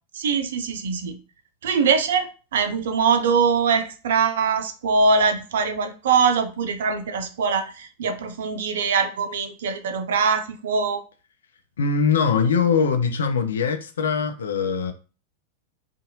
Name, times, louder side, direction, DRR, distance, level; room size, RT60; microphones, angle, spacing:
voice 1, 0.1-1.2 1.6-11.0, right 5 dB, 60° right, 0.4 m, -22 dB
voice 2, 11.8-14.9, left 5 dB, 65° left, 0.4 m, -22 dB
2.6 x 2.4 x 2.7 m
figure-of-eight pair, 90°, 0 cm